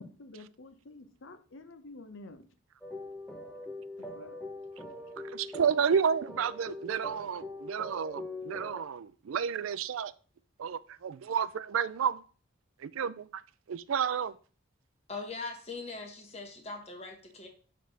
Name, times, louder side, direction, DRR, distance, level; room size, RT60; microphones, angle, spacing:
voice 1, 0.0-2.5 4.0-4.4, left 2 dB, 75° left, 0.7 m, -49 dB
sound 1, 2.8-8.8, left 2 dB, ahead, 0.7 m, -42 dB
voice 2, 5.3-10.1 10.6-12.2 12.8-13.4 13.7-14.3, right 7 dB, 85° right, 0.4 m, -31 dB
voice 3, 15.1-17.5, left 3 dB, 30° left, 1.2 m, -41 dB
6.4 x 3.4 x 5.3 m
head